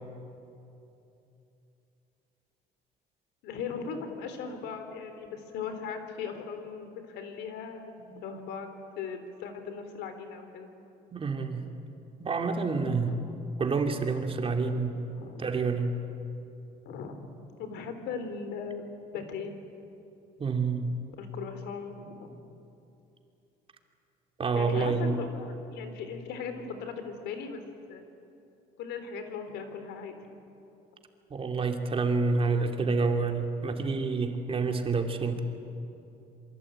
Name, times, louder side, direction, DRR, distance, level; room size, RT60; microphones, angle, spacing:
voice 1, 3.4-10.7 13.1-13.2 15.1-15.5 16.9-17.3 17.6-18.8 19.1-19.5 21.2-22.4 24.6-27.6 27.9-28.0 28.8-30.3, left 5 dB, 85° left, 8 dB, 3.6 m, -38 dB
voice 2, 11.1-11.6 12.2-13.2 13.6-14.9 15.4-16.0 20.4-20.9 24.4-25.3 31.3-35.4, right 4 dB, 35° right, 4 dB, 2.9 m, -28 dB
27.5 x 23.5 x 9.1 m, 2.8 s
cardioid pair, 110°, 17 cm